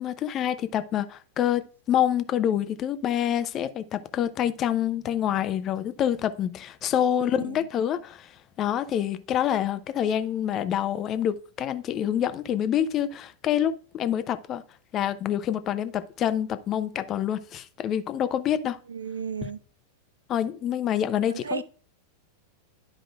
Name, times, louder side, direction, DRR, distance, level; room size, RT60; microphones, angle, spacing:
voice 1, 0.0-8.3 8.6-14.6 14.9-18.8 20.3-21.6, left 10 dB, 30° left, 0.6 m, -27 dB
voice 2, 18.9-19.6 21.3-21.6, right 5 dB, 70° right, 0.5 m, -33 dB
12.0 x 4.9 x 2.4 m
figure-of-eight pair, 90°, 0 cm